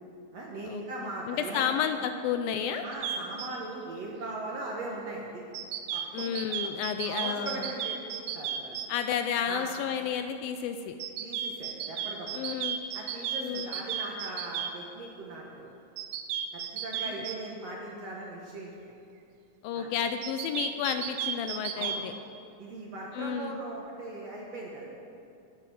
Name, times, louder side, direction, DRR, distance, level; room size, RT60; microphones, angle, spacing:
voice 1, 0.3-1.7 2.8-5.4 5.9-6.7 7.1-8.8 9.5-9.7 11.2-12.3 12.9-15.7 16.5-18.7 19.7-19.9 21.7-22.1 22.6-24.9, right 2 dB, 60° right, -2 dB, 1.9 m, -39 dB
voice 2, 1.3-2.8 6.1-7.7 8.9-11.0 12.3-12.8 13.4-13.7 19.6-22.1 23.1-23.6, left 8 dB, 80° left, 8 dB, 2.2 m, -31 dB
sound 1, 2.9-3.5 5.5-8.9 11.0-14.7 16.0-17.3 20.2-22.0, right 9 dB, 80° right, 2.3 m, -33 dB
11.5 x 10.0 x 7.6 m, 2.6 s
omnidirectional pair, 4.4 m